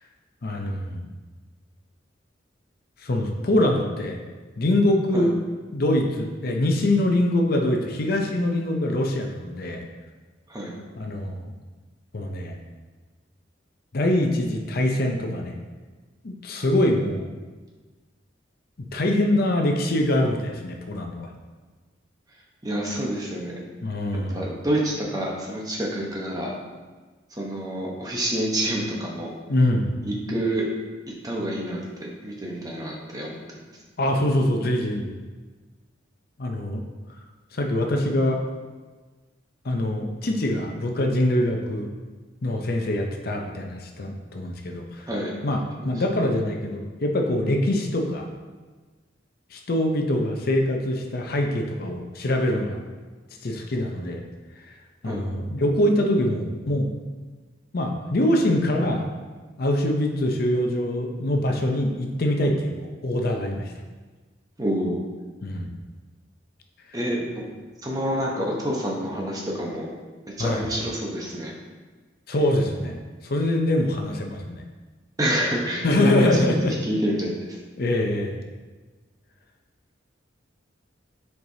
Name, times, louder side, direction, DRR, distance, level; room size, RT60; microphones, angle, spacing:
voice 1, 0.4-1.1 3.0-4.2 4.6-5.4 5.7-9.8 11.0-11.5 12.1-12.6 13.9-15.5 16.2-17.3 18.8-21.3 23.8-24.4 29.5-29.9 34.0-35.2 36.4-36.8 37.5-38.4 39.6-41.9 42.4-45.1 45.4-48.3 49.5-52.8 53.4-54.2 54.7-54.8 55.0-56.9 57.7-59.1 59.6-63.7 65.4-65.7 70.4-70.7 72.3-73.0 73.2-74.6 75.8-76.7 77.8-78.4, left 1 dB, 50° left, 2 dB, 0.6 m, -24 dB
voice 2, 22.6-23.6 24.3-26.5 27.4-29.3 30.0-30.6 31.2-31.8 32.2-33.4 45.1-45.3 45.8-45.9 55.0-55.2 64.6-65.0 66.9-67.4 67.8-69.9 70.4-71.5 75.2-77.6, right 1 dB, 20° right, -2 dB, 0.9 m, -28 dB
7.4 x 4.7 x 2.8 m, 1.3 s
head